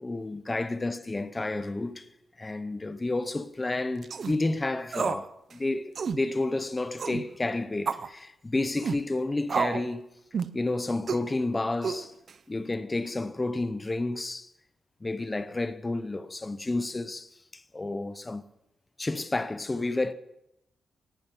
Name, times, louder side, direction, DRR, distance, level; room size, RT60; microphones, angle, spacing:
voice 1, 0.0-2.1 2.4-10.0 10.5-12.1 12.5-14.5 15.0-18.4 19.0-20.1, left 2 dB, 15° left, 0.7 m, -31 dB
sound 1, 4.0-4.3 4.9-5.3 5.5-5.6 5.9-6.2 7.0-7.2 7.9-8.1 8.8-9.0 9.5-9.9 10.3-10.6 11.1-11.3 11.8-12.3, right 6 dB, 45° right, 0.6 m, -30 dB
18.5 x 10.5 x 7.0 m
wide cardioid pair, 175°, 0 cm